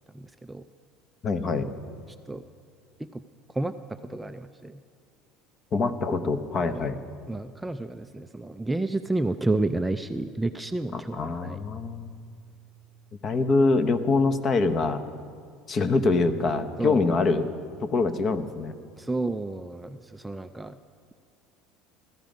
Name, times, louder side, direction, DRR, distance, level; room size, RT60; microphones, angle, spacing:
voice 1, 0.1-0.6 2.3-2.4 3.0-3.2 3.5-4.8 6.7-7.0 7.3-11.6 16.8-17.1 19.0-20.8, right 2 dB, 5° right, 9 dB, 0.4 m, -31 dB
voice 2, 1.2-1.7 5.7-7.0 10.9-12.2 13.2-15.0 15.7-17.5 17.8-18.7, left 3 dB, 35° left, 11 dB, 0.9 m, -24 dB
16.5 x 13.5 x 5.2 m, 2.2 s
cardioid pair, 130°, 0 cm